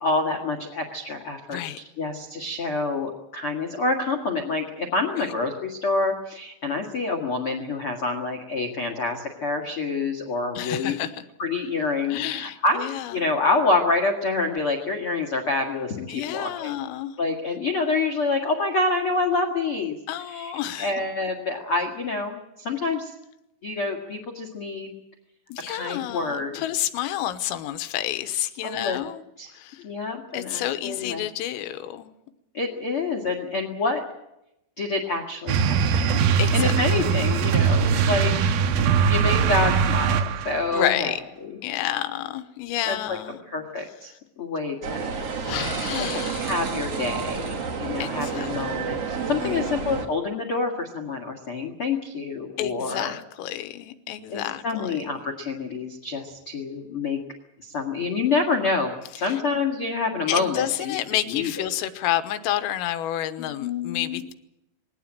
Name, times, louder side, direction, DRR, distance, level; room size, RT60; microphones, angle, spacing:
voice 1, 0.0-1.6 2.0-11.0 11.4-12.9 13.1-16.7 17.2-23.1 23.6-24.9 25.7-26.6 28.6-29.0 29.4-29.5 29.8-31.2 32.5-34.0 34.8-36.1 36.5-38.3 38.8-41.1 41.4-41.5 42.8-43.2 43.5-45.1 46.0-53.1 54.3-57.2 57.6-61.0 61.3-61.7 63.4-64.2, left 3 dB, 60° left, 5 dB, 1.4 m, -27 dB
voice 2, 10.6-11.1 12.1-13.1 16.1-17.1 20.1-20.9 25.5-29.2 29.6-29.8 30.3-32.1 36.4-36.7 40.7-41.2 41.6-43.4 45.5-46.5 48.0-48.5 49.4-49.9 52.6-55.2 59.2-59.3 60.3-64.3, left 12 dB, 85° left, 10 dB, 3.7 m, -29 dB
sound 1, 35.5-40.6, right 6 dB, 80° right, 2.1 m, -21 dB
sound 2, 44.8-50.1, right 5 dB, 60° right, 1.6 m, -30 dB
21.5 x 17.5 x 8.9 m, 0.88 s
omnidirectional pair, 5.9 m